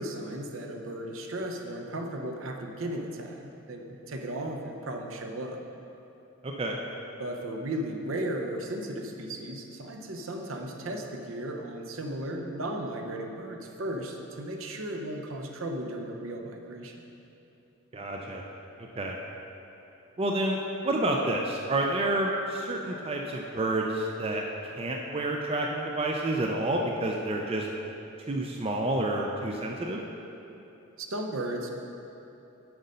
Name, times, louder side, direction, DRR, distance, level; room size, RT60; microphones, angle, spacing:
voice 1, 0.0-5.6 7.2-16.9 31.0-31.7, right 1 dB, 70° right, 2 dB, 0.7 m, -35 dB
voice 2, 6.4-6.8 17.9-18.4 18.8-19.2 20.2-20.6 20.8-27.7 28.3-30.0, right 1 dB, 25° right, 0 dB, 0.4 m, -29 dB
7.9 x 5.1 x 5.4 m, 2.9 s
head